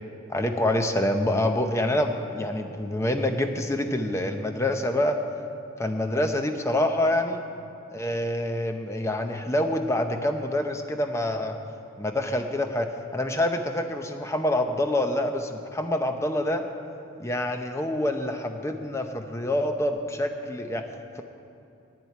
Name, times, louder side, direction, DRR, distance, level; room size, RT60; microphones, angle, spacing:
voice 1, 0.3-5.2 5.8-7.4 7.9-11.6 12.0-16.6 17.2-20.9 21.2-21.3, left 1 dB, 15° left, 5 dB, 0.7 m, -26 dB
9.9 x 7.6 x 9.3 m, 2.7 s
head